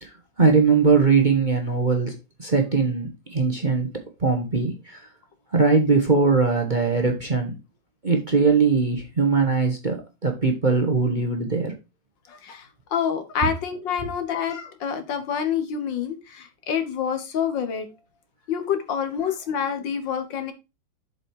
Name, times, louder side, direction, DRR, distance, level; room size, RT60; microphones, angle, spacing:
voice 1, 0.0-5.0 5.5-7.6 8.0-11.7, right 4 dB, 30° right, 1.2 m, -21 dB
voice 2, 12.3-17.9 18.5-20.5, left 7 dB, 70° left, 1.9 m, -27 dB
7.5 x 5.1 x 4.7 m
omnidirectional pair, 2.1 m